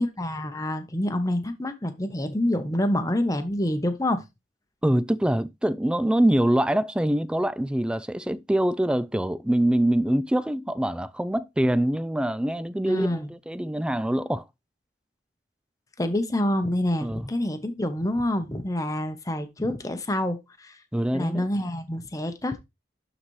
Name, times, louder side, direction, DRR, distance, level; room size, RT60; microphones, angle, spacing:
voice 1, 0.0-4.2 12.9-13.3 16.0-20.8 21.1-22.6, left 1 dB, 20° left, 0.8 m, -27 dB
voice 2, 4.8-14.4 17.0-17.2 20.9-21.4, right 1 dB, 5° right, 0.3 m, -24 dB
11.5 x 4.0 x 3.1 m
head